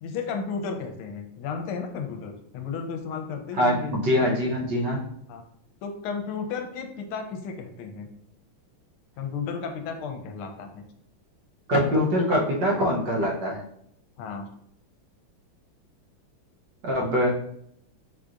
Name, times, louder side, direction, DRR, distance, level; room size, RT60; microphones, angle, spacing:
voice 1, 0.0-4.0 5.3-5.4 5.8-8.1 9.2-10.8 14.2-14.5, left 5 dB, 80° left, 5 dB, 1.5 m, -33 dB
voice 2, 3.6-5.0 11.7-13.6 16.8-17.4, equal, 65° right, -2 dB, 1.3 m, -23 dB
4.6 x 3.8 x 2.4 m, 0.70 s
omnidirectional pair, 2.4 m